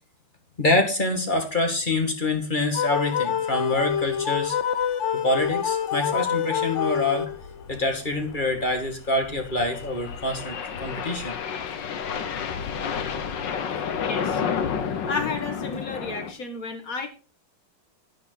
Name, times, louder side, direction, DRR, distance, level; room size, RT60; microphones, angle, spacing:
voice 1, 0.6-4.6 5.2-7.3 7.7-11.3, left 2 dB, 20° left, 4 dB, 2.1 m, -26 dB
sound 1, 2.7-7.6, left 8 dB, 80° left, 0.6 m, -26 dB
sound 2, 4.0-4.1 4.4-4.5 4.8-4.9 5.4-5.7 7.0-16.3, left 7 dB, 60° left, 1.7 m, -31 dB
voice 2, 14.1-14.4 14.9-17.1, left 4 dB, 40° left, 6 dB, 1.9 m, -32 dB
10.5 x 9.7 x 4.0 m, 0.33 s
omnidirectional pair, 2.4 m